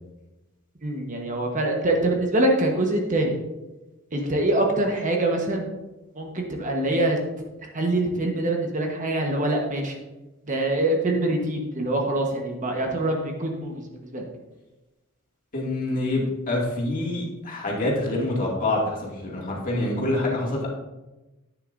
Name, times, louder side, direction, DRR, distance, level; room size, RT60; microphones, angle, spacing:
voice 1, 0.8-3.3 4.1-5.7 6.1-7.2 7.7-9.9 10.5-13.7 14.1-14.3, right 1 dB, 40° right, 1 dB, 1.2 m, -24 dB
voice 2, 15.5-20.7, left 2 dB, 40° left, -3 dB, 2.3 m, -26 dB
10.5 x 9.2 x 2.6 m, 1.1 s
head